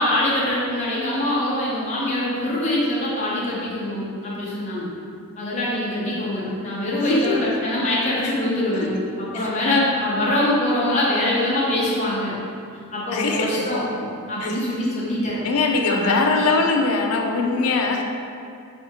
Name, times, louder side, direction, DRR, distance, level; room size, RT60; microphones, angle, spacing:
voice 1, 0.0-4.8 5.4-8.9 9.2-12.3 12.9-16.3, left 1 dB, 30° left, -7 dB, 0.8 m, -24 dB
voice 2, 6.9-7.5 8.2-8.3 9.3-9.9 13.1-13.8 14.4-14.6 15.4-18.0, left 3 dB, 80° left, 2 dB, 0.4 m, -22 dB
3.5 x 3.4 x 2.9 m, 2.4 s
head